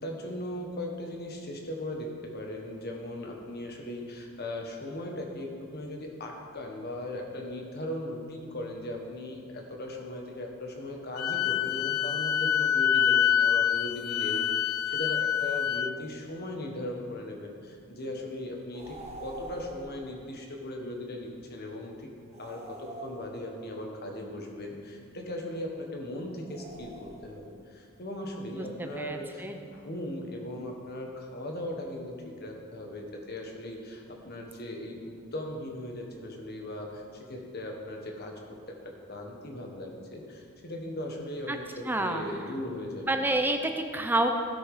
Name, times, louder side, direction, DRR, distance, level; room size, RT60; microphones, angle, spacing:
voice 1, 0.0-22.1 22.4-38.3 39.1-43.1, left 1 dB, 50° left, 1 dB, 1.6 m, -38 dB
Wind instrument woodwind instrument, 11.2-15.9, left 9 dB, 85° left, 0.4 m, -26 dB
sound 1, 18.7-20.1 22.3-23.7 26.4-27.6, right 2 dB, 30° right, 1.0 m, -45 dB
voice 2, 28.5-29.6 41.5-41.6 41.8-42.2 43.1-44.3, right 2 dB, 10° right, 5 dB, 0.7 m, -29 dB
16.5 x 6.2 x 5.1 m, 2.3 s
head